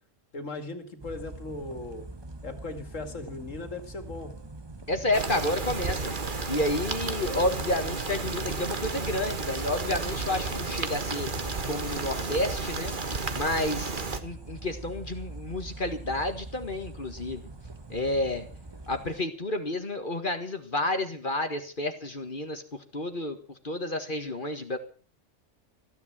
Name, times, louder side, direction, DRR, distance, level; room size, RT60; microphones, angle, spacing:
voice 1, 0.3-2.1 2.4-4.3 7.1-7.4, left 2 dB, 80° left, 8 dB, 2.7 m, -38 dB
sound 1, 1.0-19.2, right 2 dB, 20° right, 1.2 m, -43 dB
voice 2, 4.9-6.2 6.5-12.9 13.3-17.4 17.9-18.5 18.9-22.6 22.9-23.4 23.6-24.8, left 1 dB, 40° left, 7 dB, 1.9 m, -30 dB
sound 2, 5.1-14.2, right 3 dB, 40° right, 1.6 m, -32 dB
15.5 x 11.0 x 7.5 m, 0.41 s
omnidirectional pair, 1.3 m